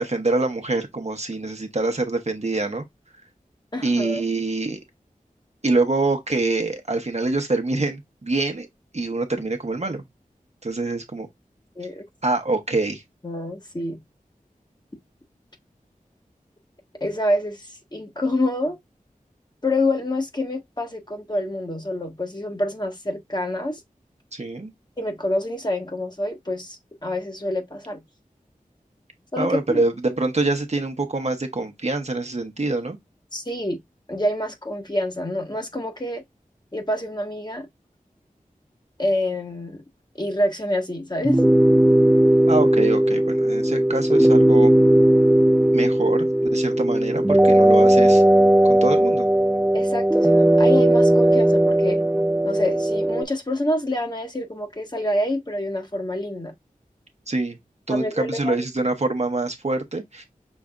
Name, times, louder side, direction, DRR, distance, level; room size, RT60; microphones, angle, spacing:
voice 1, 0.0-2.8 3.8-4.8 5.6-8.7 8.9-10.0 10.6-11.3 12.2-13.0 24.3-24.7 29.4-33.0 42.5-44.7 45.7-46.3 46.5-48.2 48.7-49.3 57.3-57.6 57.9-60.2, right 2 dB, 50° right, 1.0 m, -25 dB
voice 2, 3.7-4.2 11.8-12.0 13.2-14.0 17.0-18.8 19.6-23.8 25.0-28.0 29.3-29.8 33.3-33.8 34.1-36.2 36.7-37.7 39.0-39.8 40.2-41.4 49.7-52.0 52.4-56.5 57.9-58.6, left 1 dB, 30° left, 1.4 m, -27 dB
sound 1, 41.2-53.2, right 1 dB, 5° right, 0.4 m, -17 dB
6.2 x 3.3 x 2.4 m
wide cardioid pair, 55°, 14 cm